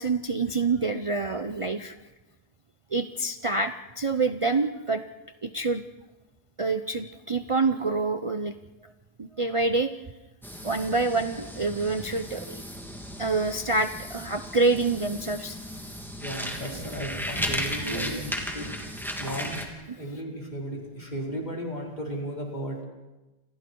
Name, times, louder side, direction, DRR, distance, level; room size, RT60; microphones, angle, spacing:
voice 1, 0.0-1.9 2.9-5.0 5.4-5.8 6.6-8.5 8.8-8.9 9.2-9.9 10.6-12.6 13.2-15.6 17.8-18.2, right 3 dB, 45° right, 8 dB, 0.4 m, -27 dB
sound 1, 10.4-19.7, equal, ahead, 2.9 m, -35 dB
voice 2, 16.2-18.7 19.2-19.5 19.9-22.8, equal, 25° left, -1 dB, 5.0 m, -35 dB
29.5 x 26.5 x 4.7 m, 1.1 s
omnidirectional pair, 1.8 m